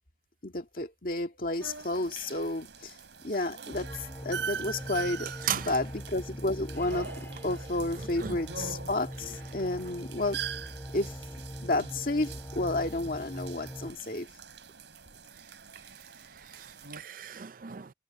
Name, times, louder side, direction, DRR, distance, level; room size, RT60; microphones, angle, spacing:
voice 1, 0.4-3.0 3.2-7.1 7.4-10.7 10.9-14.3, left 2 dB, 50° left, 2.0 m, -32 dB
sound 1, 1.6-17.0, right 6 dB, 85° right, 5.6 m, -43 dB
sound 2, 3.7-13.9, equal, 10° left, 2.8 m, -42 dB
voice 2, 16.4-17.9, right 9 dB, 50° right, 0.5 m, -36 dB
head